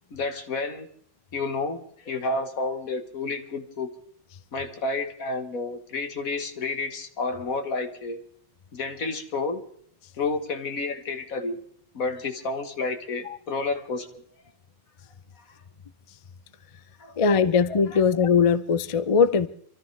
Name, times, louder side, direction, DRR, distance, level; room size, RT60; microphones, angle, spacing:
voice 1, 0.1-0.9 1.3-3.9 4.5-8.2 8.7-9.6 10.2-11.6 11.9-14.2 17.0-17.1, left 3 dB, 75° left, 1.9 m, -30 dB
voice 2, 17.2-19.5, left 5 dB, 40° left, 0.5 m, -20 dB
27.0 x 13.5 x 3.3 m
omnidirectional pair, 1.5 m